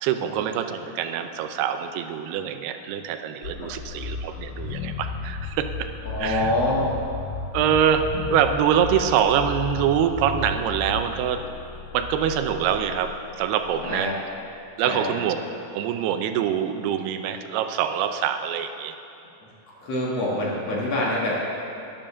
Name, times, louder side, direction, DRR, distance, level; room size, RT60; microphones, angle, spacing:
voice 1, 0.0-5.9 6.2-6.5 7.5-11.5 11.9-14.1 14.8-15.4 15.7-19.0, right 8 dB, 80° right, 8 dB, 2.6 m, -24 dB
sound 1, 3.4-14.3, left 5 dB, 85° left, 1.9 m, -34 dB
voice 2, 6.0-6.9 13.9-14.1 14.8-15.1 19.8-21.4, left 1 dB, 50° left, -5 dB, 2.4 m, -25 dB
10.5 x 10.0 x 6.8 m, 2.7 s
omnidirectional pair, 4.7 m